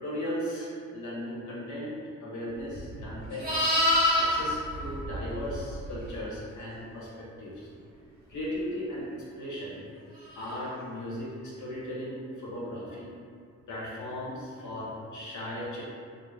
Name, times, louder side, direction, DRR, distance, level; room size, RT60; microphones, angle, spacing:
voice 1, 0.0-3.7 4.1-7.7 8.3-9.8 10.4-13.1 13.7-15.8, equal, 60° left, -6 dB, 1.0 m, -37 dB
Livestock farm animals working animals, 2.7-6.0 10.3-10.6, left 1 dB, 25° right, 1.0 m, -27 dB
2.4 x 2.1 x 3.4 m, 2.2 s
hypercardioid pair, 45°, 34 cm